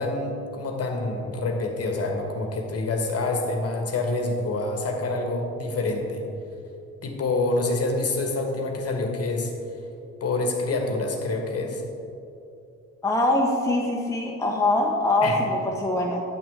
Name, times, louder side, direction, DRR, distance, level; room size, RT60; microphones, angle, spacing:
voice 1, 0.0-6.2 7.0-9.5 10.2-11.8 15.2-15.4, left 2 dB, 35° left, 3 dB, 1.4 m, -27 dB
voice 2, 13.0-16.2, left 2 dB, 5° left, 0 dB, 0.9 m, -23 dB
9.1 x 8.6 x 3.5 m, 2.6 s
figure-of-eight pair, 45°, 41 cm